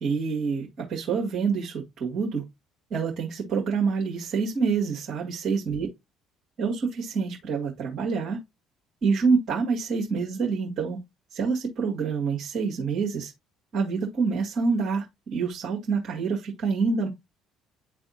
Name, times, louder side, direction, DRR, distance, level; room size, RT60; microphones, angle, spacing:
voice 1, 0.0-2.4 2.9-5.9 6.6-8.4 9.0-11.0 11.3-13.3 13.7-17.1, right 5 dB, 50° right, 1.8 m, -27 dB
10.5 x 3.4 x 2.7 m
figure-of-eight pair, 50°, 0 cm